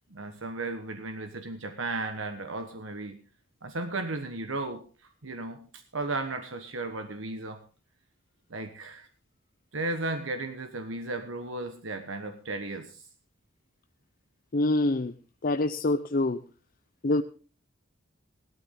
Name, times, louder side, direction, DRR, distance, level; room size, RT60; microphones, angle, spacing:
voice 1, 0.1-3.2 3.6-4.9 5.2-7.6 8.5-9.1 9.7-13.0, right 2 dB, 90° right, 7 dB, 1.3 m, -35 dB
voice 2, 14.5-15.1 15.4-16.4 17.0-17.2, left 2 dB, 45° left, 8 dB, 0.6 m, -25 dB
17.0 x 12.5 x 3.8 m, 0.36 s
head